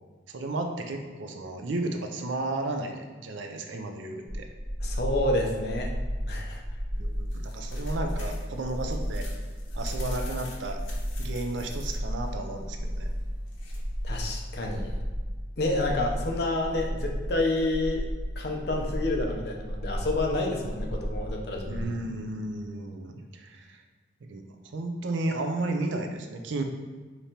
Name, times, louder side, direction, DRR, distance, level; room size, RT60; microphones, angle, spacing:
voice 1, 0.3-4.5 6.9-9.2 9.7-10.8 11.2-13.1 21.7-23.8 24.3-24.4 24.7-26.6, right 2 dB, 80° right, 4 dB, 0.5 m, -33 dB
sound 1, 4.2-21.8, equal, 35° right, 0.8 m, -33 dB
voice 2, 4.8-5.9 6.3-6.6 14.0-14.9 15.6-18.1 18.4-21.8, left 2 dB, 55° left, 0 dB, 0.6 m, -29 dB
sound 2, 7.0-14.9, left 3 dB, 90° left, 0.8 m, -50 dB
5.0 x 3.0 x 2.8 m, 1.4 s
head